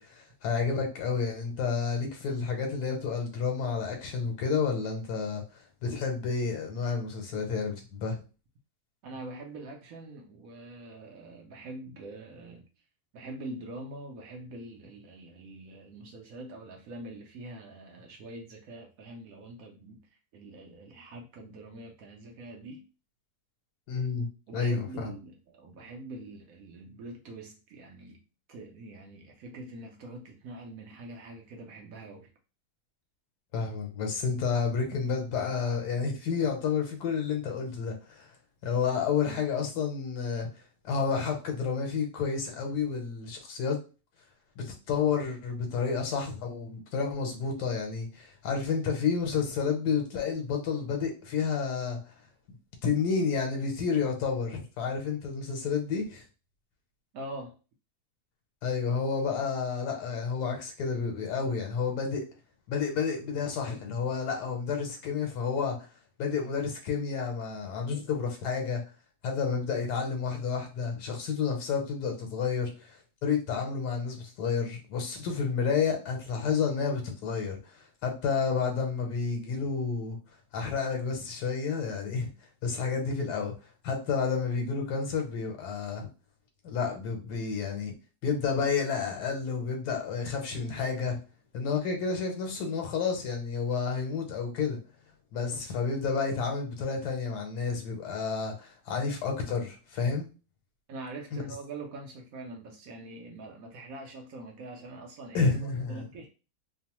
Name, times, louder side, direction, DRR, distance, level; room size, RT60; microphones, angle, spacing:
voice 1, 0.0-8.2 23.9-25.1 33.5-38.3 38.6-40.5 40.8-43.8 44.6-52.1 52.8-56.2 58.6-62.3 62.7-65.9 66.2-68.8 69.2-80.2 80.5-82.3 82.6-83.6 83.8-86.1 86.6-87.9 88.2-91.2 91.5-94.8 95.3-100.3 101.3-101.4 105.3-106.0, left 5 dB, 90° left, 1.2 m, -30 dB
voice 2, 9.0-12.7 13.1-22.8 24.5-28.2 28.5-32.3 57.1-57.5 100.9-106.3, right 2 dB, 70° right, 0.9 m, -44 dB
2.9 x 2.0 x 2.9 m
omnidirectional pair, 1.6 m